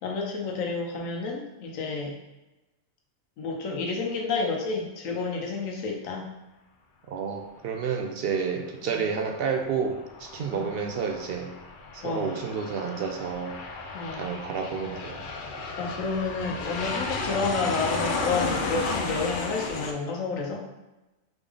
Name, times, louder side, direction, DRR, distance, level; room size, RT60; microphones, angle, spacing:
voice 1, 0.0-2.1 3.4-6.3 8.9-9.1 10.5-10.7 12.0-12.4 13.9-14.3 15.8-20.6, left 4 dB, 80° left, 1 dB, 1.2 m, -30 dB
voice 2, 7.1-11.5 11.9-13.6 14.1-15.3, right 6 dB, 65° right, 3 dB, 0.6 m, -30 dB
Aircraft, 9.7-19.9, left 3 dB, 60° left, 0.5 m, -33 dB
3.9 x 3.6 x 3.4 m, 1.0 s
omnidirectional pair, 1.4 m